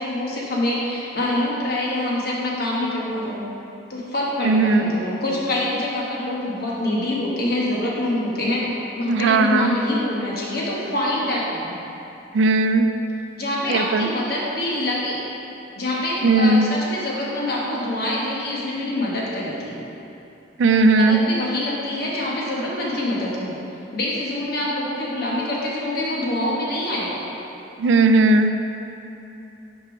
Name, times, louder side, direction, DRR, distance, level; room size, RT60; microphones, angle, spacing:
voice 1, 0.0-3.4 3.9-11.8 13.3-15.2 15.7-19.8 21.0-23.5 23.9-27.2, left 1 dB, 55° left, -5 dB, 1.2 m, -25 dB
voice 2, 4.4-5.0 9.1-9.8 12.3-12.9 13.7-14.1 16.2-16.7 20.6-21.2 27.8-28.5, right 3 dB, 75° right, 7 dB, 0.4 m, -17 dB
6.0 x 4.5 x 5.0 m, 2.8 s
head